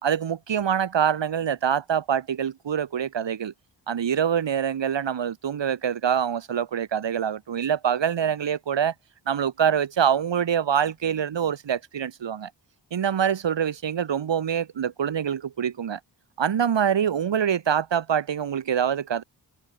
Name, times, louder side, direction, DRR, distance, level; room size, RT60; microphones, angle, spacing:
voice 1, 0.0-3.5 3.9-8.9 9.3-12.5 12.9-16.0 16.4-19.2, right 8 dB, 80° right, 2.2 m, -25 dB
wide cardioid pair, 110°, 43 cm